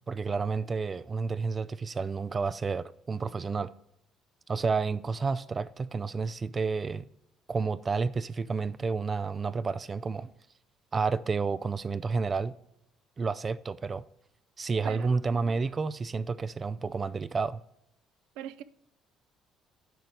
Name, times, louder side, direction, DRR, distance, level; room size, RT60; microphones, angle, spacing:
voice 1, 0.1-3.7 4.5-7.1 7.5-10.3 10.9-12.6 13.2-14.0 14.6-17.6, right 4 dB, 30° right, 0.3 m, -30 dB
voice 2, 14.8-15.3 18.4-18.6, right 11 dB, 85° right, 0.5 m, -41 dB
9.3 x 5.2 x 4.6 m
cardioid pair, 90°, 0 cm